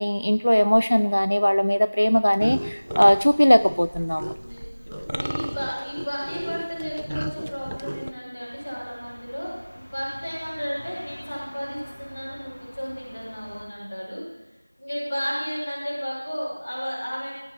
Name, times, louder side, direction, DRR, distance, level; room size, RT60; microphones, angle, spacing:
voice 1, 0.0-4.3, equal, 75° left, 13 dB, 0.4 m, -19 dB
sound 1, 2.4-8.1, equal, 60° right, 0.8 m, -33 dB
voice 2, 4.3-14.2 14.8-17.3, equal, 5° left, -18 dB, 4.4 m, -33 dB
sound 2, 8.4-13.6, equal, 55° left, 4.6 m, -45 dB
17.5 x 10.5 x 4.5 m, 1.1 s
figure-of-eight pair, 180°, 0 cm